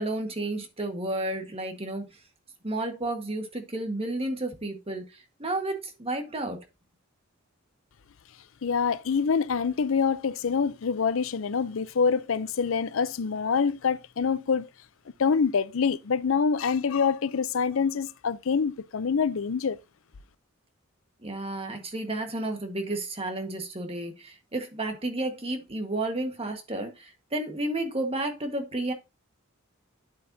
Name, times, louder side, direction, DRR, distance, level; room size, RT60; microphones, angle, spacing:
voice 1, 0.0-2.1 2.6-5.1 5.4-6.6 21.2-28.9, right 2 dB, 30° right, 1.5 m, -31 dB
voice 2, 8.6-14.7 15.2-19.8, left 5 dB, 70° left, 0.5 m, -26 dB
9.8 x 7.9 x 2.7 m
head